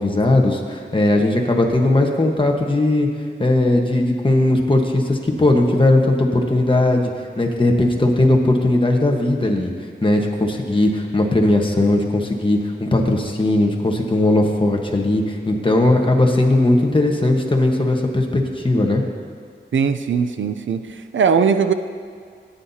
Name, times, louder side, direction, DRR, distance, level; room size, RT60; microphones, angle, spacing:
voice 1, 0.0-3.1 3.4-9.7 10.0-19.0, left 1 dB, 25° left, 1 dB, 1.3 m, -18 dB
voice 2, 19.7-21.7, right 6 dB, 90° right, 9 dB, 0.5 m, -19 dB
17.5 x 9.7 x 2.8 m, 2.1 s
wide cardioid pair, 90°, 19 cm